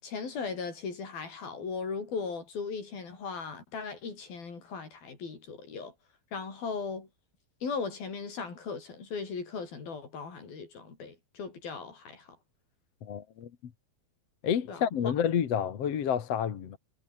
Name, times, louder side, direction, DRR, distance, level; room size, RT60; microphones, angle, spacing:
voice 1, 0.0-5.9 6.3-7.1 7.6-12.3 14.7-15.1, left 5 dB, 65° left, 7.5 m, -38 dB
voice 2, 13.0-13.5 14.4-16.8, left 8 dB, 50° left, 2.4 m, -29 dB
omnidirectional pair, 4.6 m